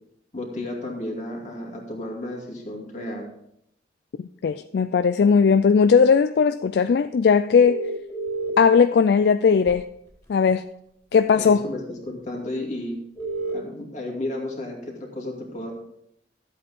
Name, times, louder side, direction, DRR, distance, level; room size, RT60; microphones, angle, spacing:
voice 1, 0.3-3.3 11.3-13.0 13.5-15.7, left 1 dB, 40° left, 2.5 m, -33 dB
voice 2, 4.4-7.9 8.6-9.9 10.3-10.7 11.1-11.7, left 6 dB, 65° left, 0.3 m, -18 dB
sound 1, 7.6-8.5 9.7-9.8 13.2-13.5, right 3 dB, 20° left, 3.5 m, -29 dB
13.0 x 8.2 x 3.6 m
head